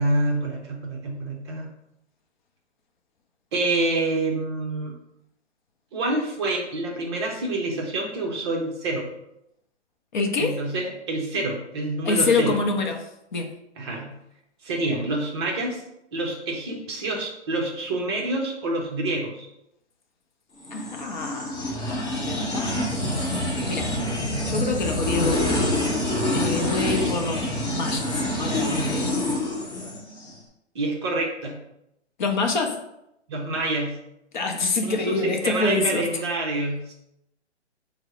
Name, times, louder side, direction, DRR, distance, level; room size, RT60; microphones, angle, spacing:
voice 1, 0.0-1.7 3.5-4.9 5.9-9.1 10.4-12.6 13.8-14.1 14.6-15.8 16.1-19.5 26.8-27.2 30.7-31.6 33.3-34.0 34.8-36.9, right 2 dB, 25° right, -1 dB, 0.5 m, -27 dB
voice 2, 10.1-10.6 12.0-13.1 13.3-13.5 20.7-23.9 24.4-25.6 26.3-29.1 32.2-32.9 34.3-36.1, left 3 dB, 45° left, 4 dB, 0.5 m, -27 dB
sound 1, 20.6-30.3, left 1 dB, 25° left, 1.0 m, -26 dB
4.5 x 2.0 x 4.2 m, 0.82 s
hypercardioid pair, 140°, 35 cm